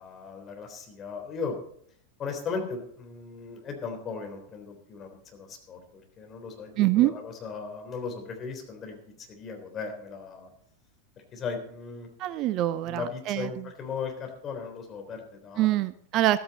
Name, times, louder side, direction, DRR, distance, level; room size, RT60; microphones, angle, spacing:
voice 1, 0.0-1.6 2.2-5.8 6.2-10.5 11.3-12.1 12.8-15.7, left 5 dB, 25° left, 3 dB, 3.6 m, -37 dB
voice 2, 6.8-7.1 12.2-13.5 15.6-16.4, right 15 dB, 40° right, 16 dB, 0.5 m, -24 dB
14.0 x 13.5 x 4.2 m, 0.63 s
figure-of-eight pair, 90°, 0 cm